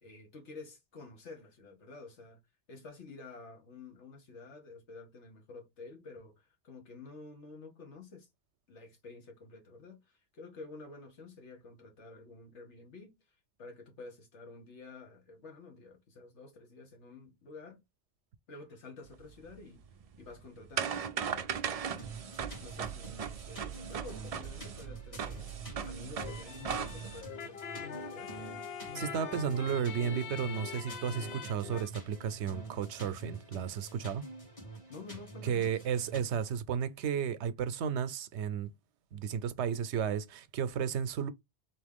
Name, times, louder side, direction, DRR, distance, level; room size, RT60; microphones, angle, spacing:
voice 1, 0.0-2.4 2.7-8.3 8.7-13.2 13.6-17.8 18.5-19.9 20.2-22.2 22.6-25.5 25.8-28.3 34.9-35.8, left 3 dB, 90° left, 1.6 m, -50 dB
sound 1, 19.1-27.2, right 7 dB, 55° right, 0.4 m, -38 dB
sound 2, 22.0-36.2, right 3 dB, 30° left, 1.5 m, -48 dB
sound 3, 26.2-31.9, left 6 dB, 65° left, 0.9 m, -43 dB
voice 2, 28.9-34.3 35.4-38.7 39.1-41.3, right 7 dB, 90° right, 0.9 m, -33 dB
4.1 x 3.0 x 3.5 m
omnidirectional pair, 1.1 m